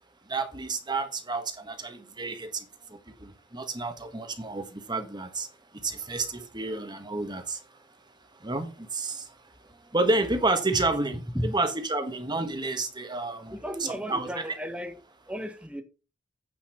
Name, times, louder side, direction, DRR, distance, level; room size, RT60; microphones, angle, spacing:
voice 1, 0.3-5.5 5.7-7.8 8.3-9.3 9.6-14.4, right 2 dB, 25° right, 1.5 m, -30 dB
voice 2, 13.5-15.0 15.3-15.8, equal, 5° right, 1.3 m, -34 dB
8.8 x 5.7 x 5.8 m
head